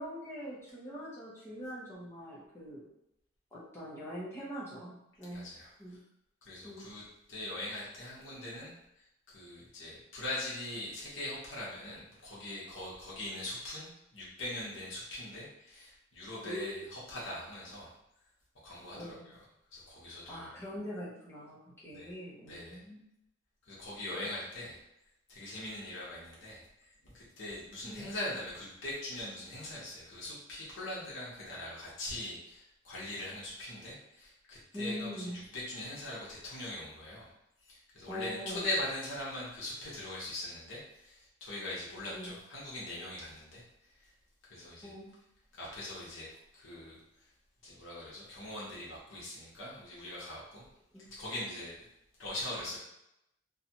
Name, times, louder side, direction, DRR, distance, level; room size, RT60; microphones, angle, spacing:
voice 1, 0.0-2.8 3.5-5.5 5.8-6.0 6.6-6.9 16.4-16.8 18.9-19.4 20.3-23.0 27.8-28.1 34.7-35.4 38.1-38.7 42.1-42.3 44.8-45.1 50.9-51.0, equal, 15° left, -7 dB, 0.9 m, -43 dB
voice 2, 5.3-5.7 6.4-7.0 7.3-8.7 9.3-17.9 18.6-19.4 19.7-20.5 21.9-22.1 22.4-22.8 23.7-24.8 25.3-37.3 37.7-43.6 44.5-44.9 45.5-46.3 46.5-47.0 47.6-50.6 51.1-51.9 52.2-52.8, left 1 dB, 85° left, -7 dB, 0.9 m, -41 dB
2.7 x 2.3 x 2.8 m, 0.83 s
head